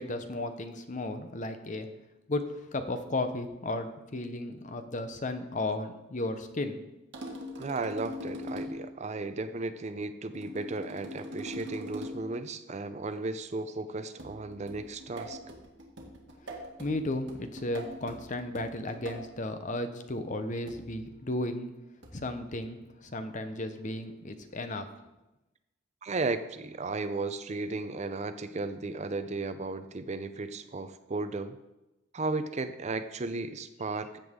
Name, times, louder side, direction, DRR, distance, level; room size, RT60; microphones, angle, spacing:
voice 1, 0.0-1.9 2.3-6.8 16.4-21.7 22.1-24.9, left 2 dB, 40° left, 8 dB, 0.8 m, -34 dB
sound 1, 7.1-8.9 10.3-12.4 14.2-19.3 20.7-21.0 22.0-22.3, equal, 60° right, 1.8 m, -42 dB
voice 2, 7.6-15.4 26.0-31.6 32.1-34.1, right 3 dB, 35° right, 11 dB, 0.5 m, -35 dB
14.0 x 7.8 x 3.7 m, 0.98 s
head